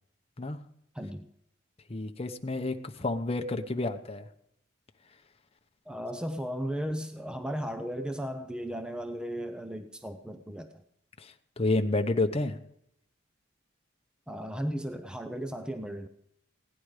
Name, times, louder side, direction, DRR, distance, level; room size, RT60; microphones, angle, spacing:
voice 1, 0.9-1.3 5.9-10.8 14.3-16.1, equal, 5° right, 8 dB, 0.6 m, -35 dB
voice 2, 1.9-4.2 11.2-12.6, left 2 dB, 30° left, 6 dB, 0.8 m, -30 dB
16.5 x 10.5 x 4.9 m, 0.76 s
head